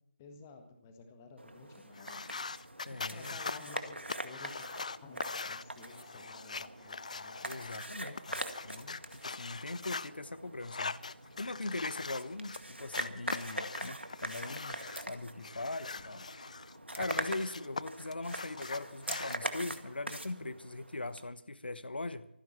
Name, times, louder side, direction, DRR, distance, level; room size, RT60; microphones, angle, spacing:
voice 1, 0.2-2.2 2.8-4.7 5.0-7.4, left 4 dB, 15° left, 6 dB, 1.6 m, -53 dB
sound 1, 1.4-21.2, right 1 dB, 80° right, 2.0 m, -43 dB
sound 2, 1.9-10.1 10.6-12.6 12.9-15.0 15.4-17.8 18.1-19.4, left 4 dB, 40° left, 0.5 m, -42 dB
voice 2, 2.8-3.4 7.4-11.0 11.4-16.3 16.9-22.3, left 2 dB, 60° left, 15 dB, 1.2 m, -41 dB
25.5 x 10.5 x 4.4 m, 0.75 s
figure-of-eight pair, 160°, 6 cm